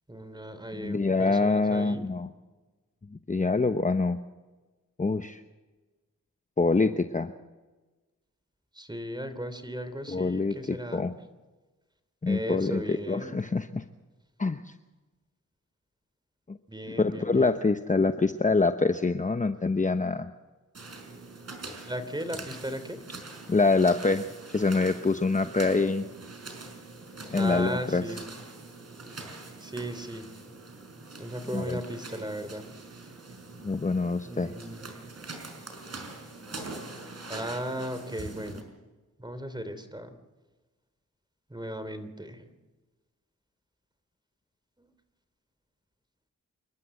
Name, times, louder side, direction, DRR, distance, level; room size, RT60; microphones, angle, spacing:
voice 1, 0.1-2.0 8.7-11.1 12.3-13.4 16.7-17.6 21.8-23.0 27.3-28.2 29.6-30.3 31.2-32.7 34.2-34.9 37.3-38.6 39.2-40.1 41.5-42.5 44.8-44.9, equal, 15° right, 11 dB, 3.2 m, -36 dB
voice 2, 0.8-2.3 3.3-4.2 5.0-5.4 6.6-7.3 10.1-11.1 12.2-13.8 14.4-14.7 16.5-16.6 17.0-20.3 23.5-26.1 27.3-28.0 31.5-31.8 33.6-34.5, left 3 dB, 25° left, 9 dB, 0.9 m, -25 dB
sound 1, 20.7-38.6, right 3 dB, 50° right, 5.3 m, -44 dB
28.5 x 12.5 x 7.8 m, 1.2 s
cardioid pair, 55°, 33 cm